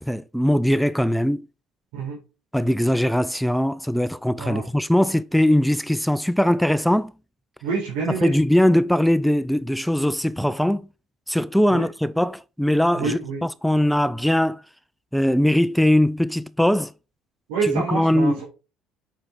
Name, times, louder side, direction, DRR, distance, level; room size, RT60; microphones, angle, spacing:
voice 1, 0.0-1.4 2.5-7.1 8.2-10.9 11.3-14.6 15.1-16.9 17.6-18.4, left 1 dB, ahead, 0.5 m, -20 dB
voice 2, 7.6-8.3 11.7-11.9 12.9-13.4 17.5-18.4, right 5 dB, 80° right, 4.4 m, -27 dB
7.6 x 6.1 x 3.9 m
supercardioid pair, 75°, 0 cm